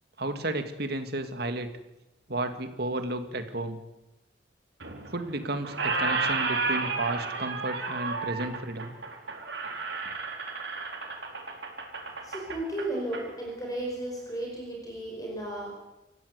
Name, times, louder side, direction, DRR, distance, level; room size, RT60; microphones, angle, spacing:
voice 1, 0.2-1.7 2.3-3.8 5.1-8.9, right 2 dB, 60° right, 8 dB, 2.2 m, -32 dB
Squeak, 4.8-5.4 5.6-13.2, right 4 dB, 80° right, 4.4 m, -32 dB
voice 2, 12.2-15.7, right 1 dB, 20° left, -1 dB, 5.3 m, -34 dB
28.0 x 15.0 x 8.4 m, 0.98 s
head